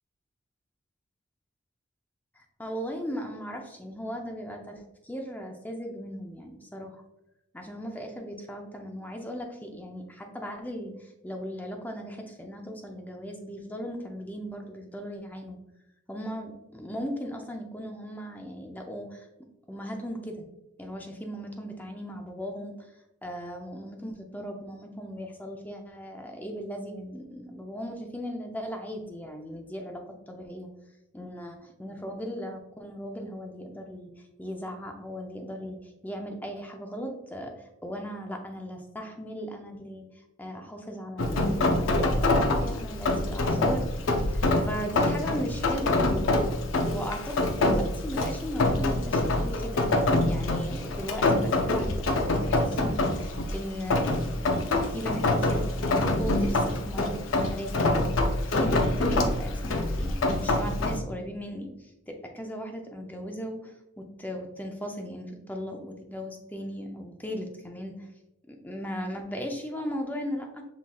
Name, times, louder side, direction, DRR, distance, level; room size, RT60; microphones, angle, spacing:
voice 1, 2.4-7.0 7.5-15.6 16.1-19.3 19.7-20.5 20.8-22.9 23.2-30.7 31.1-34.1 34.4-37.5 37.8-40.1 40.4-46.5 46.8-49.8 50.2-57.9 58.5-68.1 68.5-70.6, equal, 10° left, 3 dB, 0.5 m, -37 dB
Rain, 41.2-61.0, left 2 dB, 70° left, 0.5 m, -26 dB
5.7 x 3.6 x 2.3 m, 0.92 s
head